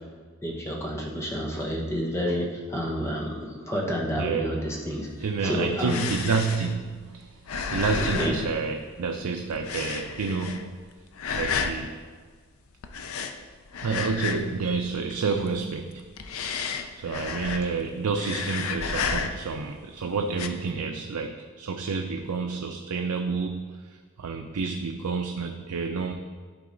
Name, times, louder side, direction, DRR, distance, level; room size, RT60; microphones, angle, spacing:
voice 1, 0.4-5.1 5.4-6.0 8.0-8.4, equal, 10° left, -1 dB, 1.0 m, -29 dB
voice 2, 4.1-4.8 5.2-7.4 7.7-10.8 11.3-12.0 13.8-16.0 17.0-26.1, right 4 dB, 90° right, 3 dB, 0.5 m, -29 dB
sound 1, 5.1-9.2 9.5-10.8 11.1-11.8 12.8-14.6 14.9-15.5 16.0-17.8 18.1-19.6 20.3-20.5, left 5 dB, 65° left, 0.5 m, -31 dB
11.5 x 3.9 x 3.9 m, 1.6 s
head